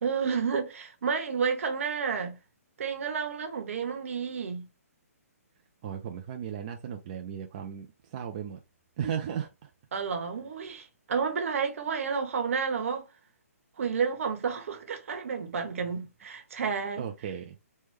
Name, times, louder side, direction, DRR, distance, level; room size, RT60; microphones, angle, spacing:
voice 1, 0.0-2.4 2.8-4.7 9.9-13.0 13.8-17.1, right 6 dB, 55° right, 1.0 m, -31 dB
voice 2, 5.8-8.6 9.0-9.7 16.0-16.1 17.0-17.5, right 8 dB, 25° right, 0.3 m, -36 dB
3.2 x 2.2 x 3.1 m
hypercardioid pair, 160°, 8 cm